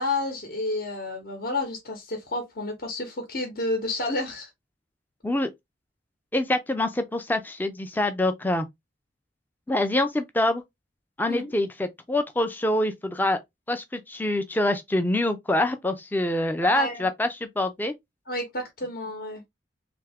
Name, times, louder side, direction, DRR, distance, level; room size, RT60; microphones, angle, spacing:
voice 1, 0.0-4.5 11.3-11.5 16.6-17.1 18.3-19.4, left 2 dB, 55° left, 1.0 m, -30 dB
voice 2, 6.3-8.7 9.7-10.6 11.2-13.4 13.7-17.9, left 1 dB, 10° left, 0.4 m, -25 dB
3.5 x 2.8 x 3.4 m
head